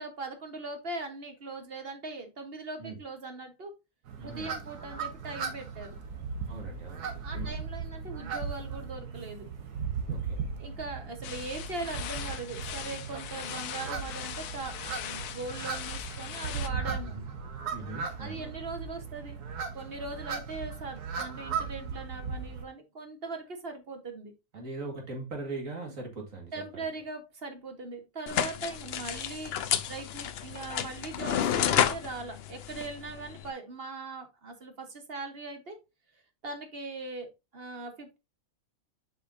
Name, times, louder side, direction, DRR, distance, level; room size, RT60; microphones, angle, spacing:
voice 1, 0.0-3.7 4.2-5.9 7.2-9.5 10.3-17.1 18.1-19.5 19.7-24.3 25.8-25.9 26.5-29.6 29.9-35.8 36.4-38.2, right 3 dB, 45° right, 1.2 m, -40 dB
sound 1, 4.1-22.6, right 5 dB, 90° right, 1.6 m, -37 dB
voice 2, 4.2-4.6 6.5-7.6 10.1-10.4 17.0-17.2 17.7-18.5 24.5-26.9, right 3 dB, 60° right, 2.2 m, -40 dB
sound 2, 11.2-16.7, left 11 dB, 85° left, 1.2 m, -40 dB
sound 3, 28.3-33.5, left 9 dB, 65° left, 0.6 m, -30 dB
7.1 x 5.5 x 2.5 m
omnidirectional pair, 1.6 m